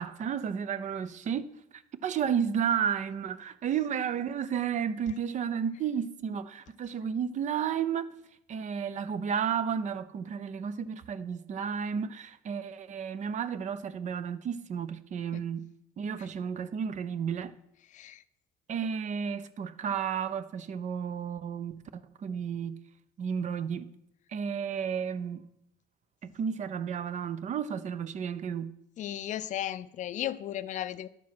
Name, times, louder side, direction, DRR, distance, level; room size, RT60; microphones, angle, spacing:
voice 1, 0.0-8.1 8.5-15.7 16.0-17.5 18.7-22.8 23.2-23.9 24.3-25.5 26.2-28.7, right 7 dB, 45° right, 0.6 m, -32 dB
voice 2, 29.0-31.1, left 11 dB, 45° left, 0.4 m, -35 dB
11.5 x 4.7 x 5.9 m
cardioid pair, 110°, 17 cm